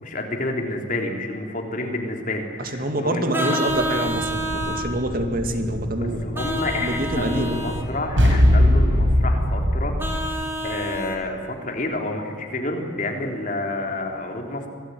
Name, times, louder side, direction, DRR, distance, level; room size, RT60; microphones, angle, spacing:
voice 1, 0.0-3.6 6.0-10.0 10.6-14.7, left 2 dB, 45° left, 2 dB, 3.6 m, -29 dB
voice 2, 2.6-6.2 6.8-7.6, right 1 dB, 50° right, 5 dB, 2.4 m, -26 dB
Vehicle horn car horn honking, 3.3-4.9 6.3-7.8 10.0-11.2, equal, 10° right, 2.7 m, -28 dB
sound 1, 3.7-10.2, left 1 dB, 85° right, 5.3 m, -22 dB
25.5 x 18.5 x 9.5 m, 2.1 s
head